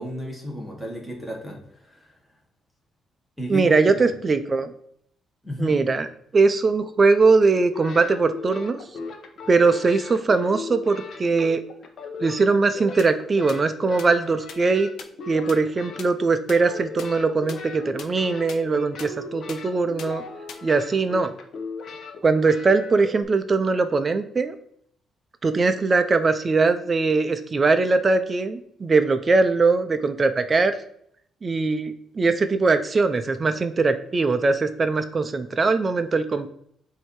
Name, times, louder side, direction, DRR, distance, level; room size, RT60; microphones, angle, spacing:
voice 1, 0.0-2.1 3.4-4.1 5.4-5.8, equal, ahead, -1 dB, 1.5 m, -33 dB
voice 2, 3.5-4.7 5.6-6.1 6.3-8.8 9.5-11.6 12.2-14.9 15.3-20.2 20.6-21.3 22.2-24.6 25.4-30.7 31.4-36.5, right 4 dB, 30° right, 9 dB, 0.5 m, -21 dB
sound 1, 7.5-16.2 16.5-23.2, left 3 dB, 55° left, 0.9 m, -38 dB
sound 2, 13.0-13.1 13.5-13.6 14.0-14.1 14.5-14.6 15.0-15.1 15.5-15.6 16.0-16.1 16.5-16.6 17.0-17.1 17.5-17.6 18.0-18.1 18.5-18.6 19.0-19.1 19.5-19.6 20.0-20.1 20.5-20.6, left 7 dB, 85° left, 0.6 m, -38 dB
7.7 x 2.8 x 4.6 m, 0.68 s
cardioid pair, 130°, 0 cm